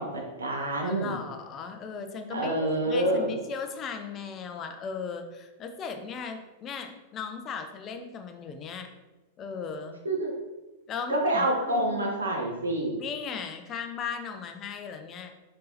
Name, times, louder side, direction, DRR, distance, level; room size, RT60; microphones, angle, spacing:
voice 1, 0.0-1.1 2.3-3.3 10.0-10.3 11.1-13.0, right 1 dB, 80° right, 1 dB, 0.6 m, -27 dB
voice 2, 0.8-8.9 9.4-10.0 10.9-12.1 13.0-15.3, left 6 dB, 30° left, 6 dB, 0.5 m, -37 dB
3.9 x 3.6 x 2.8 m, 1.1 s
figure-of-eight pair, 95°, 0 cm